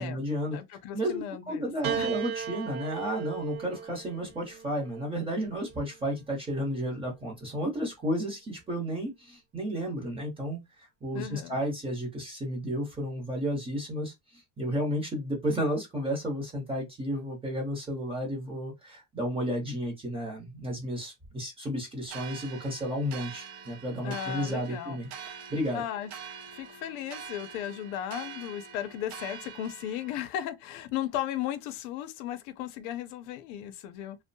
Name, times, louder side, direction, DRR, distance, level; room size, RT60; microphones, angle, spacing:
voice 1, 0.0-0.6 0.9-25.1 25.5-25.8, equal, 15° right, 0.7 m, -32 dB
voice 2, 0.5-2.1 11.1-11.6 24.0-25.0 25.7-26.1 26.5-34.2, left 11 dB, 80° left, 0.6 m, -36 dB
Piano, 1.8-6.3 7.3-8.1, right 7 dB, 70° right, 0.9 m, -37 dB
sound 1, 22.1-30.3, right 7 dB, 45° right, 0.4 m, -45 dB
2.6 x 2.1 x 2.6 m
cardioid pair, 165°, 43 cm